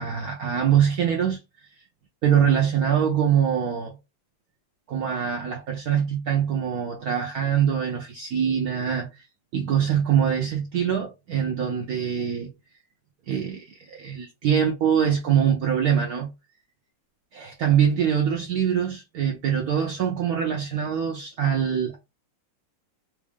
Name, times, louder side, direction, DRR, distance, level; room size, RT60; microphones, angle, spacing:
voice 1, 0.0-1.4 2.2-3.9 4.9-9.2 9.5-12.5 13.3-16.3 17.3-22.0, right 8 dB, 75° right, 0.8 m, -23 dB
3.5 x 2.3 x 3.4 m
omnidirectional pair, 2.3 m